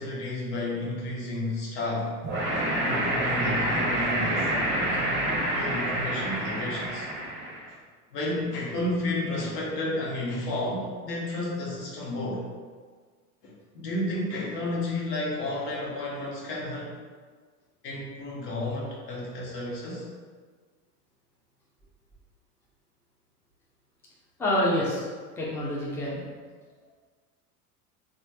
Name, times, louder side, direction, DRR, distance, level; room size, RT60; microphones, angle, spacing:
voice 1, 0.0-2.1 2.5-7.0 8.1-12.4 13.4-17.0 17.8-20.1, left 1 dB, 80° left, -4 dB, 0.9 m, -32 dB
sound 1, 2.2-7.7, right 1 dB, 25° right, 0.7 m, -27 dB
voice 2, 24.4-26.2, left 1 dB, 5° left, -6 dB, 0.4 m, -27 dB
3.1 x 2.2 x 2.6 m, 1.5 s
hypercardioid pair, 90°, 47 cm